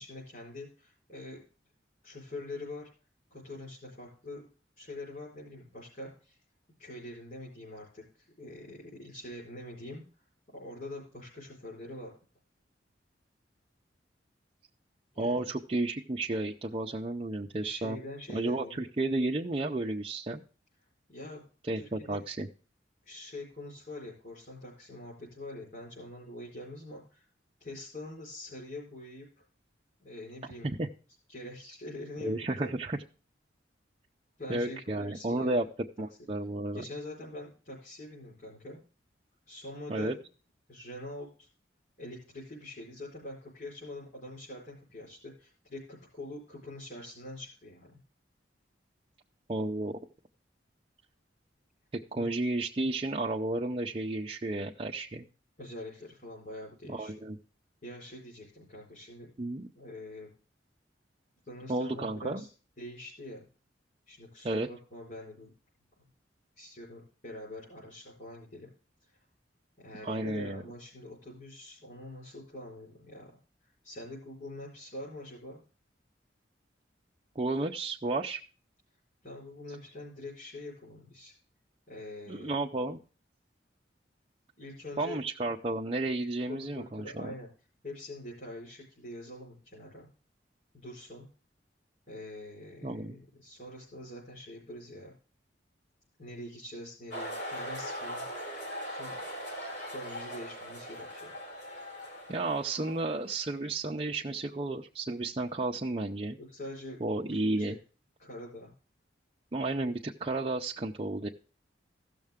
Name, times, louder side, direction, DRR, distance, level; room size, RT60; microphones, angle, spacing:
voice 1, 0.0-1.4 2.0-2.9 3.3-4.4 4.8-6.4 6.8-10.3 10.5-12.1 15.1-15.5 17.6-18.9 21.1-21.4 21.7-22.2 23.0-27.3 27.6-29.3 30.0-30.7 31.3-32.7 34.4-35.6 36.7-38.8 39.5-40.2 40.7-41.5 42.0-48.0 52.2-52.3 55.6-57.1 57.8-60.3 61.4-62.5 62.8-63.4 64.1-65.5 66.0-66.1 66.6-68.7 69.0-69.2 69.8-73.3 73.6-75.6 79.2-81.3 81.9-82.6 84.6-85.2 86.5-87.5 87.8-90.1 90.7-91.3 92.1-95.1 96.2-98.3 98.9-99.2 99.9-101.3 106.4-107.0 107.6-107.8 108.2-108.7, left 1 dB, 45° left, -6 dB, 4.5 m, -44 dB
voice 2, 15.2-18.0 18.3-20.4 21.6-22.5 30.6-30.9 32.2-33.0 34.5-35.7 36.0-36.8 39.9-40.1 49.5-50.0 51.9-55.2 56.9-57.4 59.4-59.7 61.7-62.5 64.4-64.7 70.0-70.6 77.4-78.4 82.3-83.0 85.0-87.3 92.8-93.2 102.3-106.4 107.0-107.8 109.5-111.3, right 2 dB, 30° right, -1 dB, 0.5 m, -32 dB
sound 1, 97.1-103.4, equal, 75° left, 4.2 m, -40 dB
15.5 x 6.5 x 3.6 m, 0.38 s
head